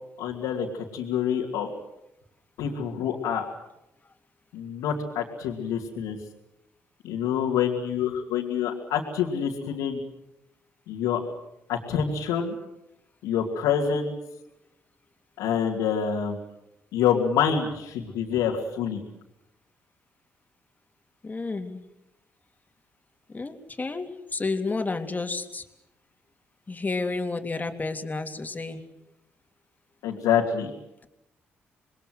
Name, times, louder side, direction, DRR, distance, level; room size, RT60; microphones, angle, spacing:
voice 1, 0.2-1.7 2.6-3.4 4.5-6.2 7.0-10.0 10.9-11.2 11.7-12.5 13.2-14.1 15.4-16.4 16.9-19.0 30.0-30.7, left 8 dB, 80° left, -2 dB, 2.7 m, -26 dB
voice 2, 21.2-21.8 23.3-25.6 26.7-28.8, left 3 dB, 30° left, 5 dB, 3.2 m, -31 dB
27.0 x 21.0 x 8.0 m, 0.87 s
hypercardioid pair, 45°, 6 cm